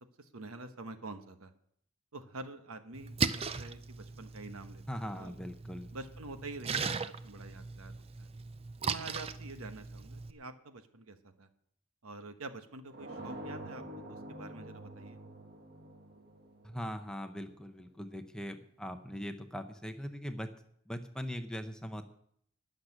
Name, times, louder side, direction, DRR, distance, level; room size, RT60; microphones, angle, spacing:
voice 1, 0.2-1.5 2.1-5.4 5.9-8.3 8.8-11.5 12.0-13.8 14.1-15.2 19.1-19.3, right 2 dB, 90° right, 8 dB, 1.2 m, -47 dB
Splash splatter, 2.9-10.3, right 5 dB, 25° right, 0.5 m, -38 dB
voice 2, 4.9-5.9 16.6-20.5 20.9-22.0, equal, 5° left, 7 dB, 0.8 m, -40 dB
sound 1, 12.9-17.6, right 1 dB, 50° right, 1.6 m, -47 dB
12.5 x 6.6 x 9.8 m, 0.69 s
head